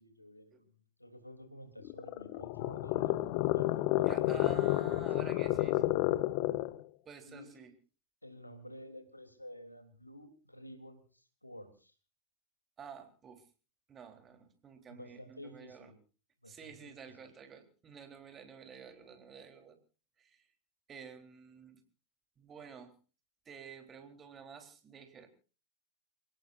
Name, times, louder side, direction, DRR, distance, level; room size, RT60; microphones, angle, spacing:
voice 1, 0.0-6.0 7.2-7.7 8.2-11.9 14.9-16.0 16.4-17.2, equal, 85° left, 8 dB, 3.4 m, -52 dB
sound 1, 1.8-6.8, left 17 dB, 45° left, 1.0 m, -30 dB
voice 2, 4.0-5.8 7.1-7.7 12.8-13.4 13.9-15.9 16.5-19.8 20.2-20.4 20.9-21.8 22.4-22.9 23.5-25.3, right 7 dB, 25° right, 6 dB, 3.8 m, -50 dB
29.0 x 18.0 x 2.6 m, 0.36 s
figure-of-eight pair, 90°, 0 cm